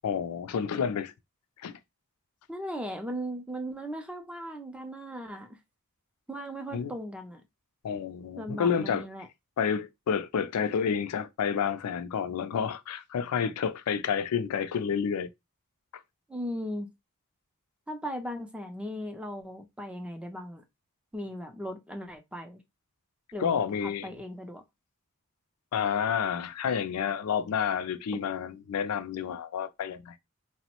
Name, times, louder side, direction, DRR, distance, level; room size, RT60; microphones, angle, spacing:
voice 1, 0.0-1.1 1.6-1.8 6.7-6.9 7.8-9.1 9.6-15.3 23.4-24.1 25.7-30.2, left 7 dB, 80° left, 0.4 m, -29 dB
voice 2, 2.5-5.6 6.3-7.4 8.4-9.3 16.3-16.9 17.9-20.6 21.1-22.6 23.3-24.6, equal, 5° right, 0.4 m, -37 dB
3.0 x 2.0 x 2.9 m
head